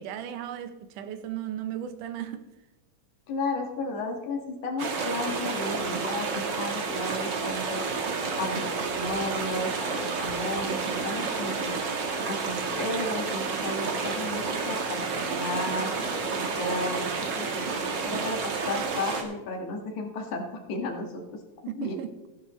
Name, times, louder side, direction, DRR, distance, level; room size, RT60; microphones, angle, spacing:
voice 1, 0.0-2.5 21.7-22.1, right 10 dB, 80° right, 2.3 m, -36 dB
voice 2, 3.3-7.9 8.4-11.8 12.2-17.7 18.0-20.4 20.7-21.4 21.8-22.0, left 2 dB, 70° left, 3.0 m, -34 dB
sound 1, 4.8-19.2, right 4 dB, 50° right, 1.4 m, -30 dB
14.5 x 11.0 x 3.1 m
omnidirectional pair, 3.7 m